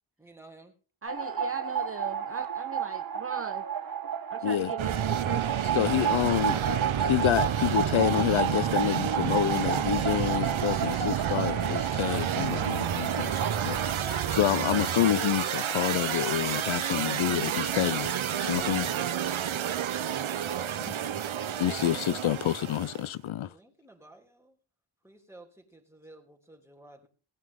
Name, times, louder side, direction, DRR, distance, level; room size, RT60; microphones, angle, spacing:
voice 1, 0.2-0.7 23.3-24.6 25.0-27.1, right 2 dB, 5° right, 3.2 m, -53 dB
voice 2, 1.0-3.7 4.3-5.4, right 6 dB, 30° right, 0.6 m, -38 dB
sound 1, 1.1-14.0, right 7 dB, 45° right, 1.2 m, -32 dB
sound 2, 4.8-23.1, right 9 dB, 75° right, 0.8 m, -30 dB
voice 3, 5.7-6.6 7.0-13.8 14.0-18.1 18.4-18.9 19.2-19.3 21.6-23.5, left 12 dB, 75° left, 0.5 m, -28 dB
18.0 x 9.4 x 3.7 m
wide cardioid pair, 85°, 48 cm